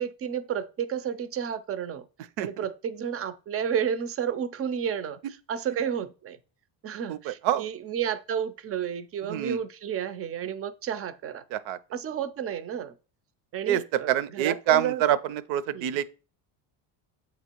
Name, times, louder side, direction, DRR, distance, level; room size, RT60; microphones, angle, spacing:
voice 1, 0.0-2.1 2.4-5.2 5.5-6.4 6.8-11.4 11.9-12.9 13.5-15.0 15.7-16.0, right 8 dB, 30° right, 0.4 m, -31 dB
voice 2, 7.1-7.7 9.2-9.6 11.5-11.8 13.7-16.0, right 11 dB, 70° right, 0.6 m, -26 dB
7.6 x 3.0 x 4.4 m
cardioid pair, 125°, 50 cm